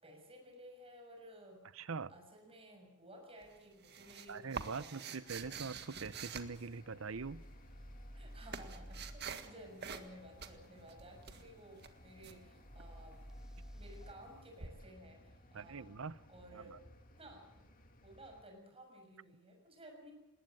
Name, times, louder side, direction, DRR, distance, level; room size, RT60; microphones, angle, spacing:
voice 1, 0.0-1.7 2.1-5.0 8.1-13.2 13.8-16.0 16.3-16.8 17.2-17.6 18.0-20.1, right 1 dB, 30° right, 2 dB, 6.3 m, -56 dB
voice 2, 1.7-2.1 4.3-7.4 15.5-16.2 16.5-16.8, right 4 dB, 75° right, 18 dB, 0.7 m, -43 dB
sound 1, 3.4-7.2 8.0-9.5 9.8-10.1 10.4-12.4 14.6-14.7, right 6 dB, 55° right, 1.7 m, -47 dB
sound 2, 5.4-18.4, left 1 dB, 45° left, 2.5 m, -61 dB
sound 3, 7.1-9.2 12.6-14.1, equal, 5° right, 0.7 m, -51 dB
20.0 x 18.5 x 8.9 m, 1.0 s
head